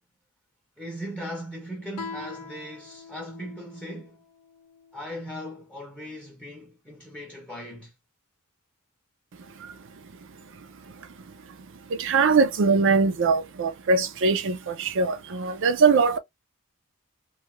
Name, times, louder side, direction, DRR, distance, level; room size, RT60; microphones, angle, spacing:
voice 1, 0.8-4.2 4.9-7.9, equal, 5° left, 0.6 m, -38 dB
Guitar, 1.9-5.2, left 5 dB, 85° left, 0.6 m, -43 dB
voice 2, 12.0-16.2, right 4 dB, 60° right, 0.5 m, -21 dB
2.7 x 2.3 x 3.0 m
head